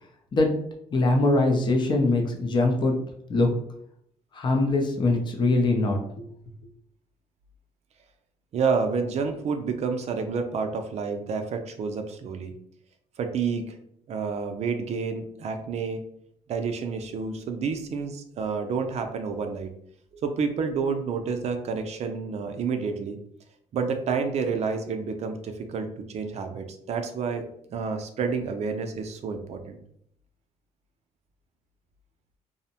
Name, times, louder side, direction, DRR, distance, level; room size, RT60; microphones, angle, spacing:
voice 1, 0.9-2.9 3.3-3.5 4.3-6.2, left 2 dB, 35° left, 2 dB, 0.5 m, -22 dB
voice 2, 8.5-12.5 13.2-13.8 14.1-16.0 16.5-19.7 20.2-23.2 23.7-27.4 27.7-29.8, right 5 dB, 55° right, 6 dB, 0.4 m, -29 dB
2.6 x 2.0 x 2.7 m, 0.69 s
cardioid pair, 110°, 13 cm